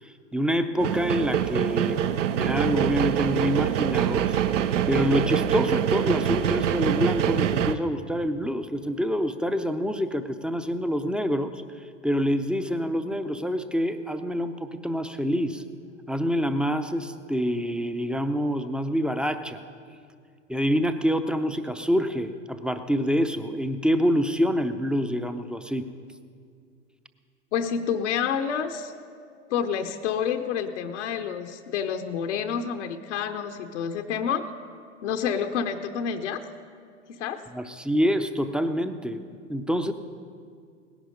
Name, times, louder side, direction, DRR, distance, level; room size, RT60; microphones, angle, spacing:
voice 1, 0.0-4.4 4.9-15.6 16.1-19.6 20.5-25.9 37.5-39.9, equal, ahead, 9 dB, 0.6 m, -26 dB
sound 1, 0.8-7.8, right 9 dB, 75° right, 0.7 m, -25 dB
voice 2, 27.5-28.9 29.5-34.5 35.0-36.4 37.1-37.4, left 7 dB, 70° left, 6 dB, 0.9 m, -28 dB
18.0 x 11.0 x 5.2 m, 2.2 s
hypercardioid pair, 90°, 37 cm